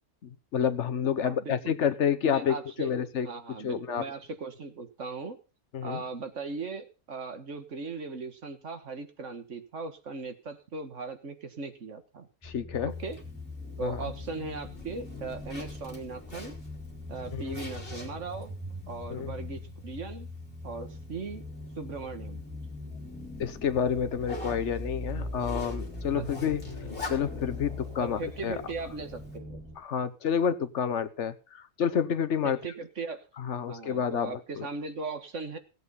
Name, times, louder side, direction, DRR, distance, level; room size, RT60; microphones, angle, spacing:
voice 1, 0.2-3.3 3.6-4.1 5.7-6.0 12.4-12.9 13.8-14.0 17.3-17.6 19.1-19.3 23.4-26.6 27.1-28.6 29.8-32.6 33.4-34.7, left 8 dB, 65° left, 12 dB, 1.2 m, -29 dB
voice 2, 1.2-1.8 2.2-2.9 3.2-5.4 5.8-12.3 12.8-13.2 13.8-16.5 17.1-18.5 18.9-20.3 20.6-21.4 21.8-22.4 26.2-26.3 28.0-29.6 32.4-33.3 33.7-35.6, right 3 dB, 70° right, 8 dB, 1.9 m, -38 dB
sound 1, 12.4-29.7, left 2 dB, 5° left, 5.6 m, -41 dB
Zipper (clothing), 12.9-29.4, left 2 dB, 45° left, 3.1 m, -48 dB
16.5 x 8.0 x 5.6 m, 0.33 s
omnidirectional pair, 1.3 m